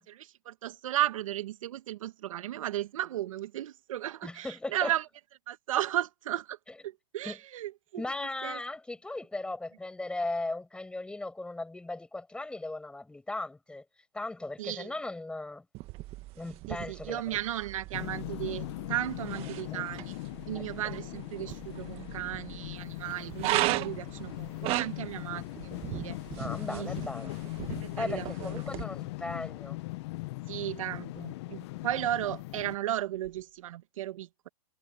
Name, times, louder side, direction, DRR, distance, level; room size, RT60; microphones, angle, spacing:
voice 1, 0.0-5.0 5.5-6.6 6.8-8.0 8.4-8.6 14.6-14.9 16.7-20.2 20.5-26.2 26.7-26.9 27.7-28.5 30.5-34.5, right 13 dB, 65° right, 1.6 m, -35 dB
voice 2, 4.2-4.9 7.2-7.4 8.0-13.8 14.1-15.7 16.4-17.4 19.7-19.8 20.5-20.6 26.4-27.3 28.0-29.8, left 2 dB, 5° left, 7.6 m, -37 dB
sound 1, 15.7-28.8, right 19 dB, 30° right, 1.4 m, -37 dB
sound 2, 17.9-32.8, left 21 dB, 45° left, 1.0 m, -39 dB
hypercardioid pair, 135°, 19 cm